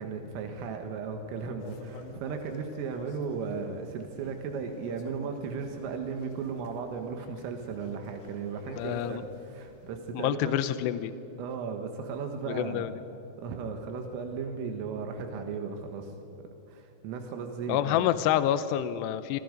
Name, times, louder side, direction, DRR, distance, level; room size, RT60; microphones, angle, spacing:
voice 1, 0.0-10.6 11.4-12.9 13.4-16.1 16.7-18.1, right 5 dB, 85° right, 5 dB, 4.1 m, -36 dB
sound 1, 1.6-10.1, left 3 dB, 55° left, 2.6 m, -51 dB
voice 2, 8.8-9.2 10.1-11.1 12.5-12.9 17.7-19.4, left 12 dB, 85° left, 12 dB, 2.4 m, -27 dB
27.5 x 24.5 x 5.3 m, 2.9 s
omnidirectional pair, 5.8 m